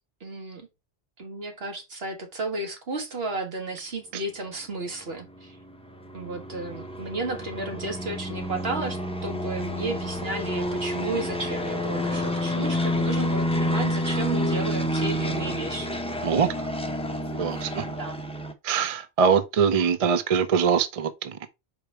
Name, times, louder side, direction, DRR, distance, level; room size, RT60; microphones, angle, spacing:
voice 1, 0.2-0.7 1.2-5.6 6.1-16.0 17.8-18.2, right 2 dB, 65° right, 1.8 m, -33 dB
sound 1, 5.2-18.5, equal, 5° left, 0.7 m, -29 dB
voice 2, 17.4-17.8 18.6-21.5, right 6 dB, 40° right, 0.6 m, -23 dB
5.2 x 5.0 x 4.5 m
omnidirectional pair, 1.1 m